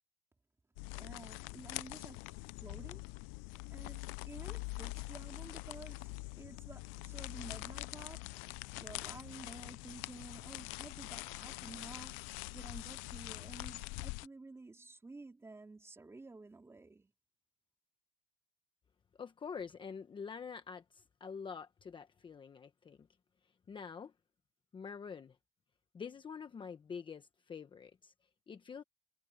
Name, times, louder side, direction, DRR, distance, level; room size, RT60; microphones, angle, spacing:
plastic wrapper paper crumple, 0.8-14.3, left 25 dB, 75° left, 0.5 m, -44 dB
voice 1, 0.9-3.1 3.7-8.2 8.8-17.1, right 3 dB, 10° right, 3.8 m, -52 dB
voice 2, 19.2-23.1 23.7-24.1 24.7-25.4 25.9-28.1 28.5-28.8, left 6 dB, 25° left, 1.1 m, -46 dB
cardioid pair, 135°, 21 cm